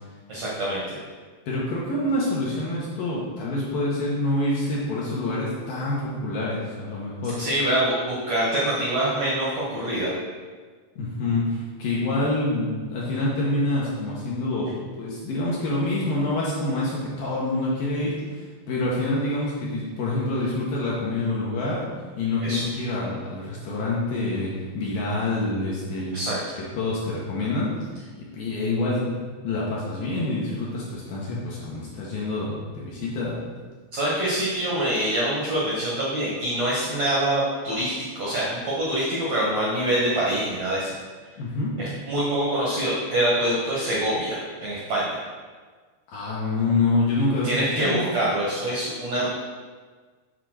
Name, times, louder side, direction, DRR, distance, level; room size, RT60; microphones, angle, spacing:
voice 1, 0.3-1.0 7.4-10.1 22.4-22.7 26.1-26.4 33.9-40.9 41.8-45.2 47.4-49.3, right 1 dB, 90° right, -6 dB, 1.4 m, -25 dB
voice 2, 1.5-7.4 11.0-21.9 22.2-26.2 26.6-27.7 28.2-29.1 29.4-33.4 41.4-41.8 46.1-48.1, left 2 dB, 70° left, -6 dB, 2.2 m, -26 dB
8.3 x 4.0 x 6.3 m, 1.5 s
omnidirectional pair, 5.5 m